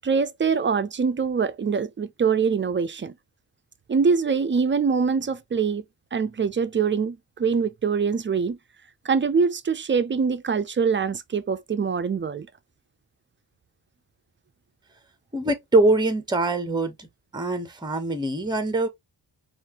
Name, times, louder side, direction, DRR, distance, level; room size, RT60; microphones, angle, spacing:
voice 1, 0.0-3.1 3.9-5.8 6.1-8.6 9.0-12.5, right 5 dB, 30° right, 0.4 m, -24 dB
voice 2, 15.3-17.1 17.3-18.9, right 2 dB, 10° right, 0.9 m, -23 dB
5.5 x 2.5 x 2.8 m
wide cardioid pair, 130°, 42 cm